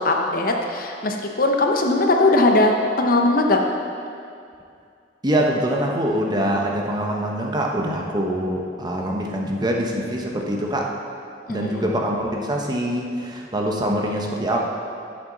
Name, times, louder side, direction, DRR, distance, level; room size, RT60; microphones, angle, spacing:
voice 1, 0.0-3.7 11.5-11.8, left 2 dB, 50° left, 2 dB, 0.9 m, -19 dB
voice 2, 5.2-10.9 11.5-14.6, right 1 dB, 25° right, 0 dB, 0.9 m, -24 dB
11.0 x 7.8 x 4.0 m, 2.4 s
head